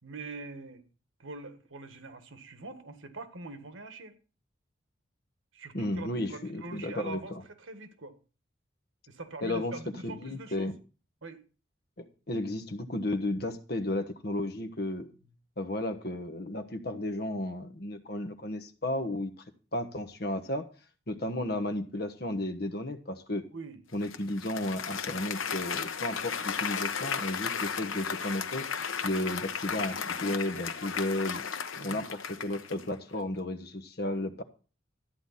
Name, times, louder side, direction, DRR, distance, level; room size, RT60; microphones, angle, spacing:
voice 1, 0.0-0.8 1.2-4.2 5.5-7.3 7.6-8.1 9.1-10.7 11.2-11.4 21.1-21.3 23.5-23.8 30.5-30.6 31.8-32.0, right 3 dB, 85° right, 1.6 m, -43 dB
voice 2, 5.7-7.4 9.4-9.7 10.0-10.7 12.0-15.1 15.6-19.3 19.7-20.6 21.1-23.5 23.9-28.6 29.0-31.4 31.8-34.4, left 1 dB, 50° left, 1.2 m, -33 dB
Applause, 24.0-32.9, left 6 dB, 85° left, 1.0 m, -35 dB
13.5 x 9.1 x 4.1 m
head